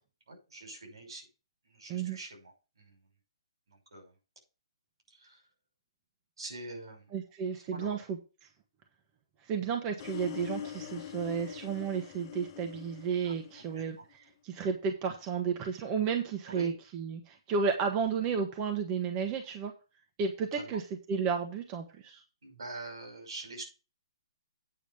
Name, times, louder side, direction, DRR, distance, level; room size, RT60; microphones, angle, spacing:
voice 1, 0.3-1.3 1.6-3.1 3.7-4.2 5.1-5.4 6.4-7.2 7.5-8.0 10.7-11.0 13.2-14.1 16.5-16.8 20.5-20.8 22.4-23.6, right 2 dB, 75° right, 3 dB, 5.7 m, -45 dB
voice 2, 7.1-8.2 9.4-14.0 14.4-19.7 20.2-20.8 21.1-22.2, right 6 dB, 25° right, 4 dB, 1.4 m, -32 dB
sound 1, 10.0-14.1, left 10 dB, 40° left, 1.3 m, -43 dB
9.0 x 5.0 x 6.8 m, 0.32 s
hypercardioid pair, 145°, 3 cm